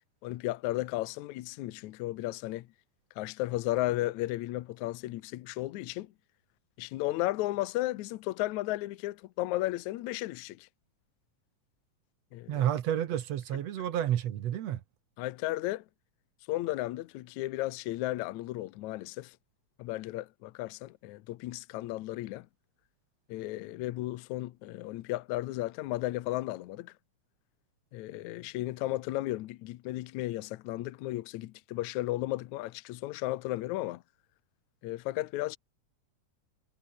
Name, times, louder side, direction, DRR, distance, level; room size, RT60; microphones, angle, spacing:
voice 1, 0.2-2.7 3.2-6.1 6.8-10.7 12.3-12.7 15.2-15.8 16.5-19.4 19.8-22.5 23.3-26.9 27.9-34.0 34.8-35.6, left 17 dB, 75° left, 2.0 m, -34 dB
voice 2, 12.5-14.8, right 11 dB, 60° right, 2.1 m, -30 dB
omnidirectional pair, 3.7 m